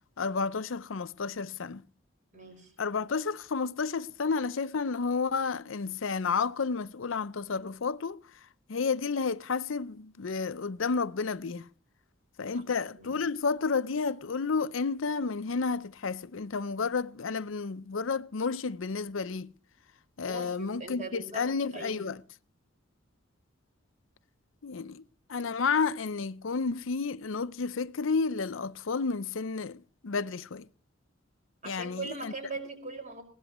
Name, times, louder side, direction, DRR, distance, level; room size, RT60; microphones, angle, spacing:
voice 1, 0.2-1.8 2.8-8.4 8.7-11.7 12.4-19.5 20.2-22.2 24.6-25.0 25.3-30.7 31.6-32.3, left 4 dB, 75° left, 0.6 m, -31 dB
voice 2, 2.3-2.7 12.5-12.6 13.0-13.1 20.2-21.4 21.7-22.1 31.6-33.2, right 3 dB, 40° right, 5.1 m, -40 dB
21.0 x 17.5 x 3.0 m
head